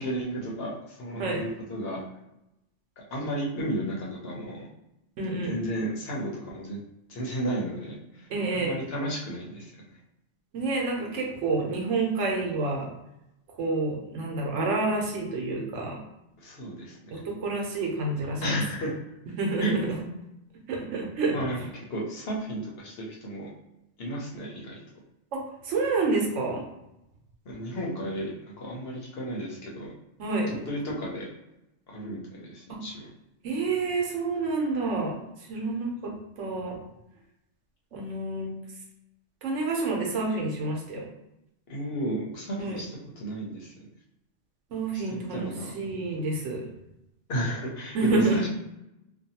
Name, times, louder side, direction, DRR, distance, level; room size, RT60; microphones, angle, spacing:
voice 1, 0.0-2.0 3.0-4.7 5.5-6.8 7.1-8.2 8.6-10.0 16.4-17.1 18.4-18.9 19.6-19.8 21.3-23.5 24.0-24.8 27.5-29.9 30.7-31.3 31.9-33.0 41.7-42.9 43.2-43.7 44.9-45.7 47.3-48.5, right 1 dB, 60° left, -3 dB, 0.9 m, -33 dB
voice 2, 5.2-5.6 8.3-8.7 10.5-12.9 13.6-16.0 17.1-18.6 19.4-20.0 20.7-21.7 25.3-26.6 30.2-30.5 32.7-32.8 33.4-35.2 35.5-36.8 37.9-38.5 39.4-41.1 42.6-42.8 44.7-46.7 47.9-48.4, right 3 dB, 85° right, 0 dB, 1.0 m, -28 dB
2.6 x 2.3 x 2.8 m, 0.88 s
omnidirectional pair, 1.2 m